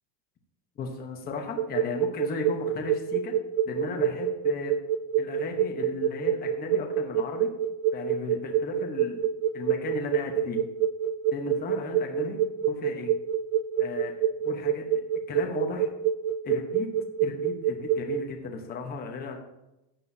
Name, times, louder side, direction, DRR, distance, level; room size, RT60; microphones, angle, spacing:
voice 1, 0.8-3.3 3.6-4.7 5.2-7.5 7.9-9.2 9.5-10.6 11.3-12.4 12.7-13.1 13.8-14.1 14.4-15.0 15.3-15.9 16.4-16.9 17.2-19.4, left 4 dB, 20° left, 2 dB, 1.0 m, -36 dB
sound 1, 1.6-18.3, right 9 dB, 65° right, 0.6 m, -26 dB
14.5 x 9.2 x 2.8 m, 0.93 s
cardioid pair, 180°, 42 cm